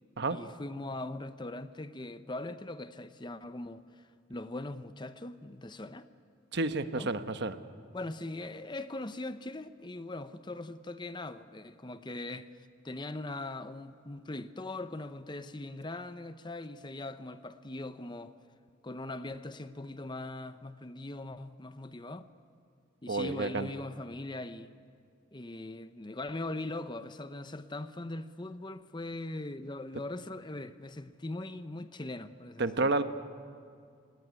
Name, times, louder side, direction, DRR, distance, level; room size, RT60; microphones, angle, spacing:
voice 1, 0.3-4.0 4.3-6.1 6.9-7.1 7.9-12.5 12.8-18.3 18.8-22.3 23.0-24.7 25.3-32.9, left 2 dB, 20° left, 0.8 m, -40 dB
voice 2, 6.5-7.6 23.1-23.7 32.6-33.0, right 3 dB, 55° right, 1.1 m, -30 dB
29.5 x 19.0 x 9.6 m
head